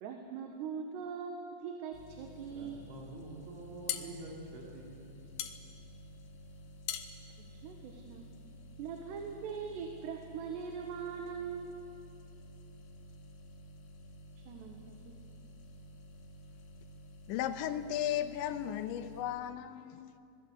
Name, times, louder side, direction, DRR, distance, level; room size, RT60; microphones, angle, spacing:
voice 1, 0.0-2.9 7.4-8.3 8.8-11.8 14.5-15.2, right 6 dB, 75° right, 3.5 m, -41 dB
sound 1, 1.9-19.2, equal, 55° left, 3.2 m, -53 dB
voice 2, 2.5-5.2, right 2 dB, 90° right, 5.4 m, -47 dB
sound 2, 3.5-8.4, left 11 dB, 70° left, 2.6 m, -42 dB
voice 3, 17.3-20.2, left 11 dB, 85° left, 3.2 m, -35 dB
26.5 x 19.5 x 8.2 m
omnidirectional pair, 5.1 m